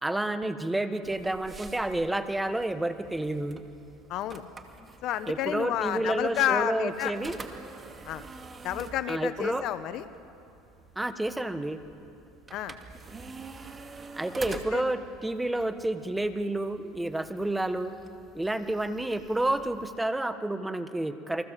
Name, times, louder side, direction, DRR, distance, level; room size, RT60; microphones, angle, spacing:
voice 1, 0.0-3.6 5.3-7.4 9.1-9.7 10.9-11.8 14.2-17.9 18.3-21.4, right 1 dB, 10° right, 9 dB, 1.5 m, -30 dB
sound 1, 1.0-20.0, right 4 dB, 25° right, 2.3 m, -47 dB
voice 2, 4.1-4.4 5.0-7.1 8.1-8.3 8.6-10.0 12.5-12.8 14.5-14.9, left 11 dB, 55° left, 12 dB, 1.2 m, -30 dB
29.0 x 24.0 x 7.7 m, 2.7 s
supercardioid pair, 100°, 0 cm